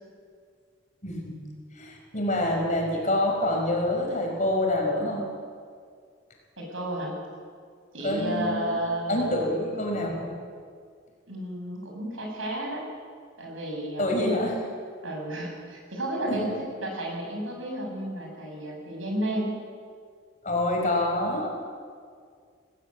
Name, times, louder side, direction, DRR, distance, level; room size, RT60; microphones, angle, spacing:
voice 1, 1.0-1.3 1.7-5.3 8.0-8.8 9.1-10.3 14.0-14.6 16.3-16.5 20.4-21.6, left 1 dB, 40° left, 0 dB, 5.0 m, -26 dB
voice 2, 6.6-7.1 7.9-9.4 11.3-12.8 13.4-14.2 15.0-19.6, right 1 dB, 85° right, 0 dB, 6.6 m, -32 dB
19.0 x 16.0 x 9.5 m, 2.1 s
head